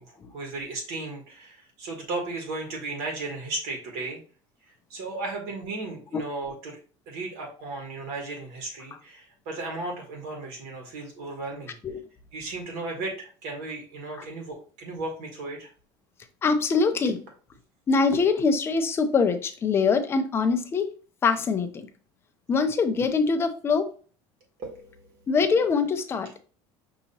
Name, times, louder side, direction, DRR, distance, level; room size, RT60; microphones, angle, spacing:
voice 1, 0.0-4.2 4.9-6.8 7.1-11.7 12.3-15.7 24.6-25.2, right 2 dB, 65° right, 1 dB, 1.5 m, -35 dB
voice 2, 16.4-17.2 17.9-20.9 21.2-21.9 22.5-23.9 25.3-26.4, left 4 dB, 20° left, 8 dB, 0.5 m, -23 dB
5.5 x 2.9 x 2.8 m, 0.39 s
cardioid pair, 160°, 13 cm